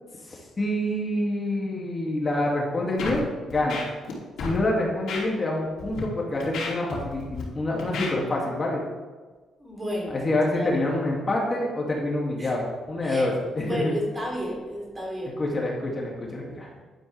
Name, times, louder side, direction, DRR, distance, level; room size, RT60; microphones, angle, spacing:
voice 1, 0.3-3.2 3.5-3.8 4.4-8.8 10.1-13.9 15.4-16.7, left 1 dB, 30° left, -3 dB, 2.6 m, -27 dB
Scratching (performance technique), 3.0-3.2 3.5-4.1 4.4-4.6 5.1-5.2 5.8-6.0 6.4-7.4 7.8-8.1, left 4 dB, 75° left, 3.1 m, -32 dB
voice 2, 9.6-10.2 10.5-10.7 12.4-12.5 13.0-13.3 13.6-15.4, equal, 20° right, -2 dB, 3.5 m, -32 dB
11.0 x 9.8 x 3.5 m, 1.4 s
cardioid pair, 90°, 0 cm